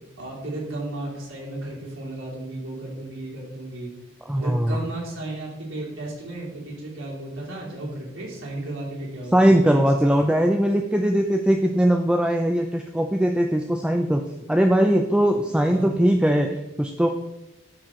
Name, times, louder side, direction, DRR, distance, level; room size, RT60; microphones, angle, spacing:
voice 1, 0.2-3.9 4.3-10.2 15.5-16.0, right 2 dB, 85° right, -4 dB, 3.0 m, -34 dB
voice 2, 4.3-4.8 9.3-14.2 14.5-17.1, equal, 5° right, 3 dB, 0.4 m, -20 dB
13.0 x 4.4 x 3.7 m, 0.97 s
head